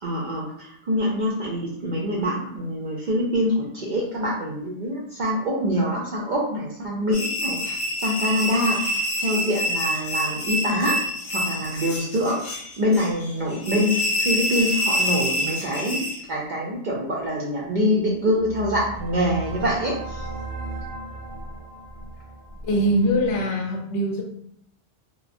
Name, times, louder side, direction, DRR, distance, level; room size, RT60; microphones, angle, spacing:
voice 1, 0.0-11.0 11.3-20.3, equal, 60° right, -4 dB, 0.5 m, -25 dB
sound 1, 7.1-16.2, left 1 dB, 55° left, 0.7 m, -27 dB
sound 2, 18.0-23.4, right 2 dB, 80° right, 0.9 m, -36 dB
voice 2, 22.6-24.2, equal, 85° left, 1 dB, 0.9 m, -22 dB
3.0 x 2.2 x 2.5 m, 0.69 s
omnidirectional pair, 1.2 m